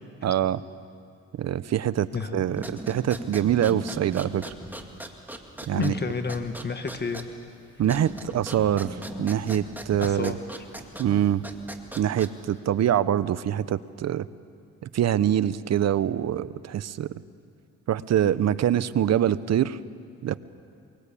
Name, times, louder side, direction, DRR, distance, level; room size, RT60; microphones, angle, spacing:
voice 1, 0.2-0.6 1.4-4.4 5.7-5.9 7.8-10.4 11.0-11.4 12.0-14.2 14.9-17.2 17.9-19.8 20.2-20.4, right 10 dB, 60° right, 16 dB, 0.9 m, -24 dB
voice 2, 2.1-2.4 5.7-7.3 10.0-10.4, left 4 dB, 35° left, 8 dB, 1.6 m, -30 dB
sound 1, 2.5-12.6, right 1 dB, 5° right, 2.2 m, -40 dB
24.5 x 23.5 x 8.5 m, 2.4 s
cardioid pair, 90°, 30 cm